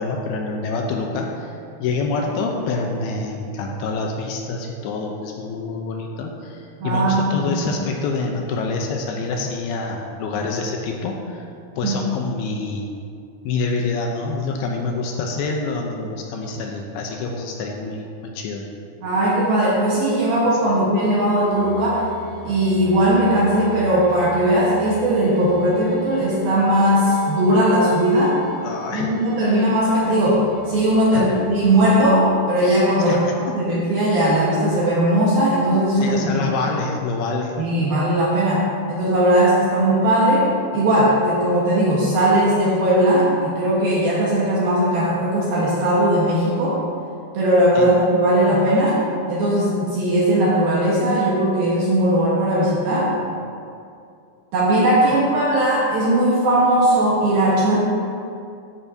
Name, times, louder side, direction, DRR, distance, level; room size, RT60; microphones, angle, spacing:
voice 1, 0.0-11.5 11.8-12.9 13.4-18.6 28.6-29.1 31.1-31.4 33.0-33.5 36.0-37.5 47.7-47.9, left 3 dB, 75° left, 1 dB, 2.5 m, -26 dB
voice 2, 6.8-7.5 11.8-11.9 19.0-22.1 22.4-28.4 28.9-33.2 33.5-36.5 37.6-46.8 47.3-49.0 49.3-53.1 54.5-57.8, right 1 dB, 65° right, -6 dB, 2.9 m, -18 dB
sound 1, 21.4-32.0, left 2 dB, 50° right, 1.4 m, -38 dB
13.5 x 9.1 x 2.8 m, 2.4 s
omnidirectional pair, 4.9 m